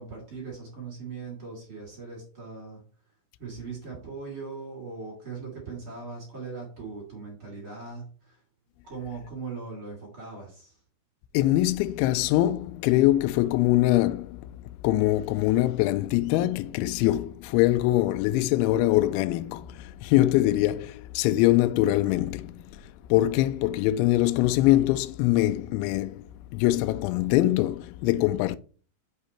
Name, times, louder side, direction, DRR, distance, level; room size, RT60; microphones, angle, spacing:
voice 1, 0.0-2.8 3.4-8.4 8.8-10.8, right 4 dB, 30° right, 3.0 m, -39 dB
voice 2, 11.3-14.5 14.8-22.8 23.1-28.6, left 15 dB, 85° left, 2.6 m, -23 dB
6.8 x 5.7 x 4.3 m
omnidirectional pair, 6.0 m